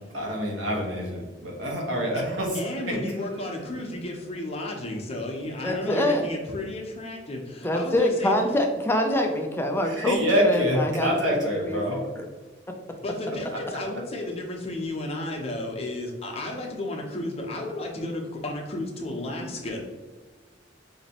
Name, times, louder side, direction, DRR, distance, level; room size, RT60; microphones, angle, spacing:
voice 1, 0.1-2.5 9.9-12.0, equal, 90° right, -2 dB, 1.3 m, -25 dB
voice 2, 2.5-8.4 13.0-19.8, left 1 dB, 35° left, 0 dB, 0.8 m, -33 dB
voice 3, 5.6-6.3 7.6-11.1 11.4-12.3, left 1 dB, 10° left, 3 dB, 0.4 m, -25 dB
5.1 x 2.9 x 2.9 m, 1.3 s
head